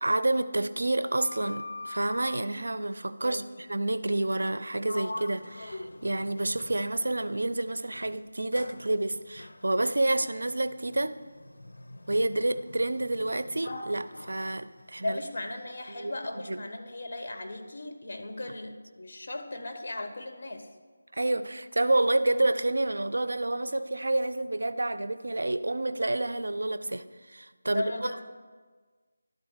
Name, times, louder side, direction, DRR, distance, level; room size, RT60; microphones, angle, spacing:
voice 1, 0.0-11.2 12.1-15.2 16.0-16.1 16.5-16.6 21.1-28.1, right 2 dB, 80° right, 13 dB, 0.5 m, -29 dB
Sliding door, 0.9-2.5 4.4-4.6 4.9-7.3 7.9-15.4, left 2 dB, 75° left, 0.6 m, -44 dB
voice 2, 15.0-20.7 27.6-28.2, left 2 dB, 50° left, 5 dB, 1.2 m, -37 dB
11.5 x 4.1 x 8.0 m, 1.5 s
figure-of-eight pair, 170°, 0 cm